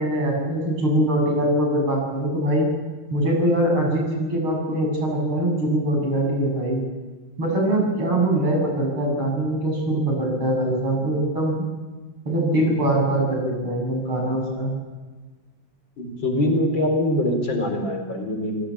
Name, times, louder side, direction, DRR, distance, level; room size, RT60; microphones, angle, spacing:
voice 1, 0.0-2.7 3.1-6.8 7.4-11.6 12.2-14.7, right 1 dB, 80° right, 1 dB, 8.4 m, -22 dB
voice 2, 16.0-18.7, left 1 dB, 60° left, 4 dB, 5.2 m, -23 dB
29.0 x 17.5 x 8.6 m, 1.3 s
omnidirectional pair, 2.3 m